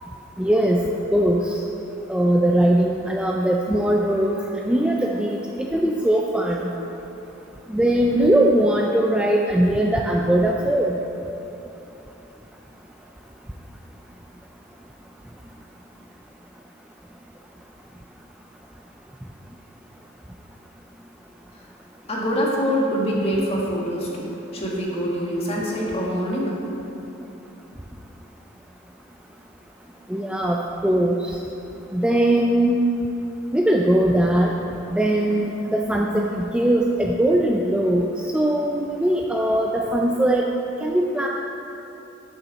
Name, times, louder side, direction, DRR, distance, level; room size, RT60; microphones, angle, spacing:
voice 1, 0.4-0.8 1.1-1.6 2.1-6.7 7.7-10.9 30.1-31.4 31.9-32.8 33.5-34.5 34.9-38.1 38.3-40.5 40.8-41.3, right 1 dB, 5° right, -1 dB, 0.4 m, -20 dB
voice 2, 22.1-26.5, equal, 30° left, -4 dB, 1.7 m, -24 dB
12.5 x 6.9 x 4.2 m, 3.0 s
head